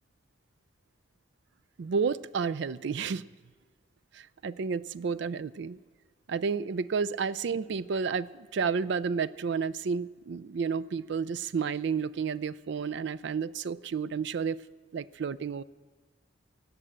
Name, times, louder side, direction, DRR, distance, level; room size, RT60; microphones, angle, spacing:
voice 1, 1.8-3.2 4.1-5.8 6.3-14.6 14.9-15.6, right 5 dB, 65° right, 19 dB, 0.4 m, -31 dB
18.5 x 7.5 x 8.0 m, 1.4 s
head